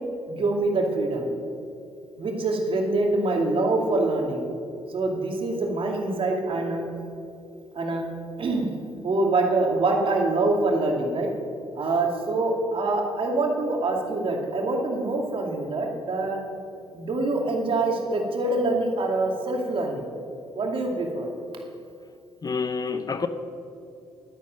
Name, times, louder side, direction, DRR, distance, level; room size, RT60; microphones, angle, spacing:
voice 1, 0.3-1.3 2.2-4.4 4.9-6.8 7.7-8.1 8.4-8.7 9.0-11.3 11.7-16.4 16.9-20.1 20.5-21.3, right 2 dB, 55° right, 1 dB, 2.5 m, -25 dB
voice 2, 22.4-23.3, left 5 dB, 35° left, 11 dB, 0.8 m, -28 dB
12.0 x 9.6 x 6.5 m, 2.6 s
supercardioid pair, 60°, 11 cm